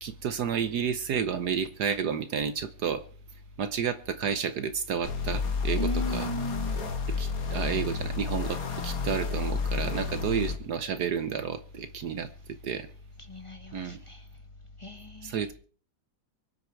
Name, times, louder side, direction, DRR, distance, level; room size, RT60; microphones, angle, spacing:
voice 1, 0.0-3.0 3.6-6.3 7.2-12.3 12.6-12.9 13.7-14.0 15.2-15.5, right 7 dB, 65° right, 1.4 m, -31 dB
sound 1, 5.0-10.6, left 5 dB, 50° left, 2.1 m, -31 dB
voice 2, 5.8-6.9 13.3-14.2 14.8-15.5, equal, 15° left, 1.7 m, -36 dB
24.0 x 8.2 x 4.6 m
omnidirectional pair, 2.0 m